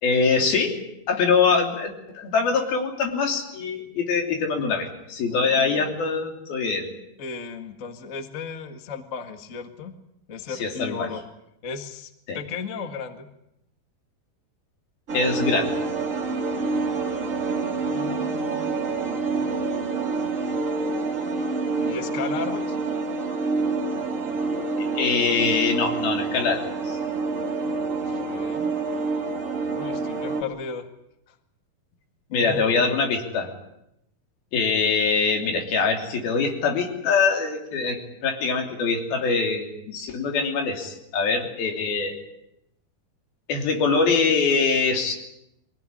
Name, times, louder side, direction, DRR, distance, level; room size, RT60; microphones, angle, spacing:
voice 1, 0.0-0.7 1.1-6.9 10.6-11.1 12.3-12.4 15.1-15.8 24.8-27.0 32.3-33.5 34.5-42.2 43.5-45.1, left 4 dB, 90° left, 3 dB, 5.0 m, -23 dB
voice 2, 5.3-5.9 7.2-9.9 10.3-11.2 11.6-13.3 17.7-18.8 19.3-19.6 21.8-22.8 27.6-28.7 29.7-30.9 32.3-33.0, left 5 dB, 35° left, 7 dB, 1.3 m, -35 dB
sound 1, 15.1-30.4, right 3 dB, 35° right, 1.3 m, -27 dB
23.5 x 17.5 x 9.9 m, 0.82 s
omnidirectional pair, 4.2 m